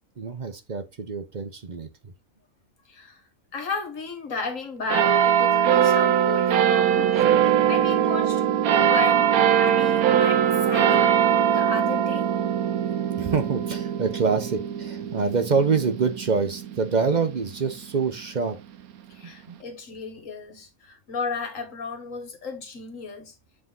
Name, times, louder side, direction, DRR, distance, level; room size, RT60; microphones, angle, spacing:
voice 1, 0.2-2.1 6.4-6.6 6.9-7.0 13.2-18.6 19.2-19.6, right 5 dB, 40° right, 0.7 m, -26 dB
voice 2, 2.9-3.2 3.5-7.2 7.7-8.4 8.8-11.0 11.5-12.3 19.1-23.3, left 4 dB, 65° left, 1.7 m, -34 dB
sound 1, 4.9-17.8 18.4-18.5, right 9 dB, 85° right, 1.2 m, -21 dB
7.6 x 3.5 x 3.7 m
omnidirectional pair, 1.5 m